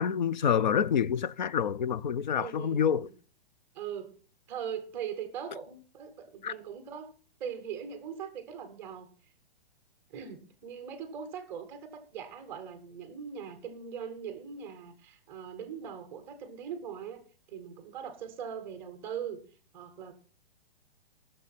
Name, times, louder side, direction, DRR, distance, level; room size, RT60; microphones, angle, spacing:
voice 1, 0.0-3.1 6.4-6.5, left 8 dB, 50° left, 0.5 m, -27 dB
voice 2, 2.3-3.1 3.7-4.2 4.5-7.1 7.4-9.1 10.1-17.2 17.5-19.4 19.7-20.1, right 7 dB, 5° right, 0.6 m, -40 dB
15.5 x 6.6 x 5.6 m
hypercardioid pair, 175°, 30 cm